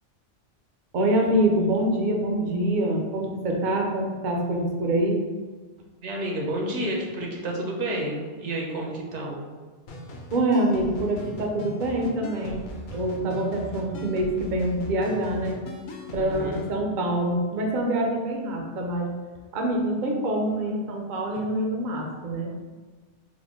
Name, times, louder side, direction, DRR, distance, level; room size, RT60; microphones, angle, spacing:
voice 1, 0.9-5.2 10.3-15.6 16.1-19.1 19.5-22.5, right 1 dB, 55° right, 1 dB, 0.6 m, -25 dB
voice 2, 6.0-9.4 16.2-16.6, right 1 dB, 75° right, -1 dB, 1.0 m, -30 dB
sound 1, 9.9-16.7, left 1 dB, 60° left, 0.6 m, -40 dB
3.6 x 2.1 x 3.5 m, 1.4 s
omnidirectional pair, 1.2 m